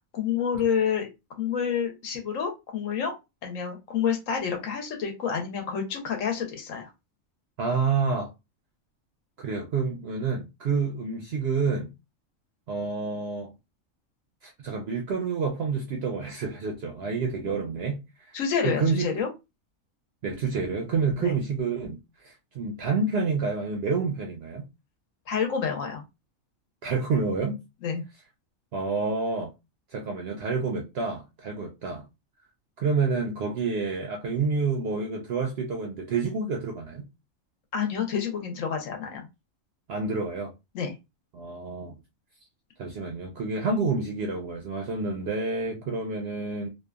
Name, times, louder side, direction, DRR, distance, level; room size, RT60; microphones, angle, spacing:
voice 1, 0.1-1.1 1.4-3.1 3.4-6.9 18.3-19.3 21.2-21.3 25.3-26.0 27.8-28.0 37.7-39.2 40.7-41.0, left 7 dB, 75° left, 1.1 m, -28 dB
voice 2, 7.6-8.3 9.4-11.9 12.7-13.5 14.4-18.3 18.6-19.1 20.2-24.7 26.8-27.6 28.7-29.5 29.9-32.1 32.8-37.1 39.9-40.5 41.3-41.9 42.8-46.7, right 4 dB, 65° right, 0.6 m, -28 dB
2.8 x 2.2 x 2.3 m
omnidirectional pair, 1.4 m